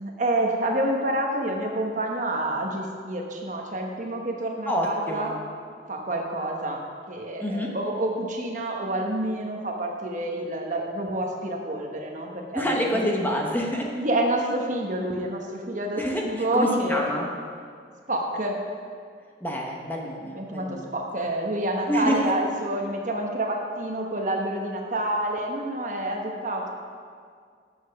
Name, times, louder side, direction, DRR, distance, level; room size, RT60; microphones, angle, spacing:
voice 1, 0.0-5.3 5.9-6.8 7.1-13.0 13.9-17.1 18.1-18.6 20.2-26.7, right 1 dB, 45° right, 1 dB, 1.1 m, -28 dB
voice 2, 4.7-5.3 7.4-7.7 12.5-13.9 16.0-17.3 19.4-20.9 21.9-22.3, equal, 10° left, -1 dB, 0.9 m, -27 dB
7.7 x 6.5 x 6.3 m, 2.1 s
head